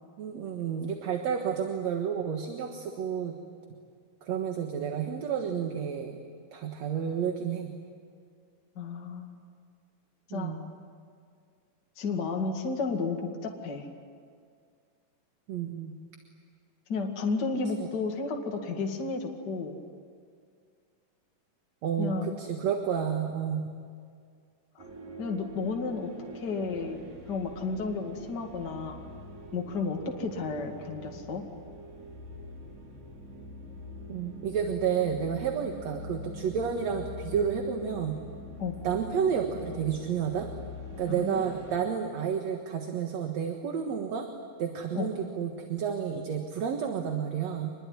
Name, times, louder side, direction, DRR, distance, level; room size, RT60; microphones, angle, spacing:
voice 1, 0.2-3.3 4.2-6.2 6.5-7.7 10.3-10.6 15.5-15.9 17.8-17.9 21.8-23.7 34.1-38.2 38.8-40.5 41.0-44.3 44.6-47.7, right 7 dB, 60° right, 4 dB, 2.5 m, -30 dB
voice 2, 8.8-9.4 10.3-10.6 12.0-13.9 16.9-19.8 22.0-22.4 24.8-24.9 25.2-26.1 26.3-29.0 29.5-31.4 38.6-38.8 41.2-41.4 44.9-45.1, left 4 dB, 35° left, 2 dB, 2.3 m, -32 dB
sound 1, 24.8-41.8, left 1 dB, 80° right, 6.4 m, -44 dB
25.5 x 21.5 x 9.7 m, 2.1 s
omnidirectional pair, 3.9 m